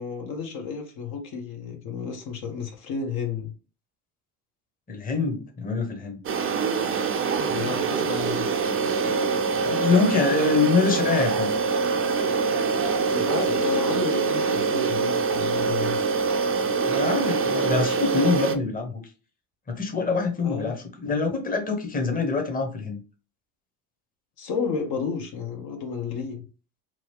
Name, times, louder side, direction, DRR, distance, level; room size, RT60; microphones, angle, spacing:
voice 1, 0.0-3.5 7.4-8.5 13.1-16.0 20.4-20.8 24.4-26.4, left 5 dB, 50° left, 0.9 m, -32 dB
voice 2, 4.9-6.2 9.6-11.5 16.9-19.0 19.7-20.7 21.0-23.0, left 4 dB, 20° left, 0.9 m, -24 dB
sound 1, 6.2-18.5, right 5 dB, 30° right, 0.5 m, -24 dB
3.0 x 2.3 x 3.2 m
hypercardioid pair, 85°, 47 cm